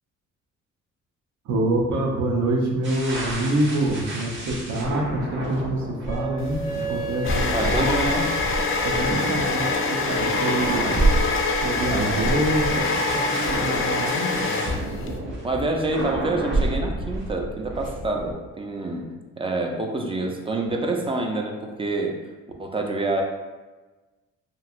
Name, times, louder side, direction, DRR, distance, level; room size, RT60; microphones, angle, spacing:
voice 1, 1.4-8.1 8.8-11.0 11.6-14.5, right 1 dB, 70° right, -1 dB, 0.7 m, -26 dB
sound 1, 2.8-18.3, right 1 dB, 40° right, 0.8 m, -30 dB
Wind instrument woodwind instrument, 6.1-10.7, right 1 dB, 80° left, 0.7 m, -35 dB
sound 2, 6.4-15.1, left 3 dB, 45° left, 0.5 m, -25 dB
voice 2, 7.5-8.3 9.0-9.3 15.4-22.1 22.6-23.2, right 2 dB, 20° right, 1 dB, 0.4 m, -27 dB
3.1 x 2.6 x 2.4 m, 1.2 s
cardioid pair, 90°, 30 cm